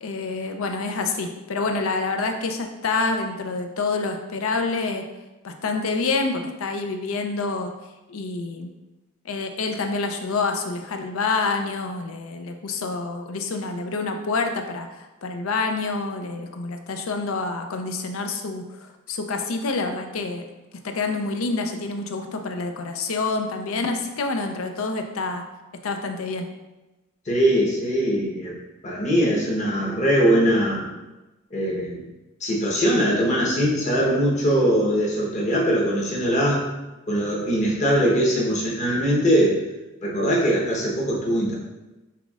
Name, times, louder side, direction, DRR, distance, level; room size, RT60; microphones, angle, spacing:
voice 1, 0.0-5.0 5.4-7.7 8.1-8.7 9.2-20.4 20.8-25.4 25.8-26.5, left 3 dB, 80° left, 5 dB, 0.5 m, -27 dB
voice 2, 27.3-28.5 28.8-30.9 31.5-32.1 32.4-36.6 37.1-39.6 40.0-41.5, equal, 35° left, -4 dB, 1.0 m, -21 dB
5.8 x 3.5 x 2.4 m, 1.1 s
head